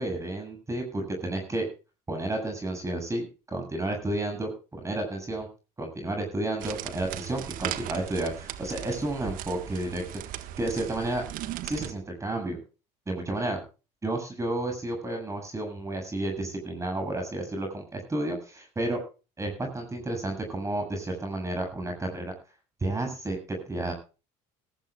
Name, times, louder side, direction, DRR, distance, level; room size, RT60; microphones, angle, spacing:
voice 1, 0.0-1.7 2.1-5.5 5.8-10.0 10.6-11.2 11.6-12.6 13.1-13.6 14.0-19.0 19.4-22.3 22.8-23.4 23.7-23.9, right 1 dB, 20° right, 4 dB, 7.7 m, -31 dB
sound 1, 6.6-11.9, right 12 dB, 65° right, 1.5 m, -37 dB
21.5 x 14.0 x 2.4 m, 0.32 s
supercardioid pair, 95°, 15 cm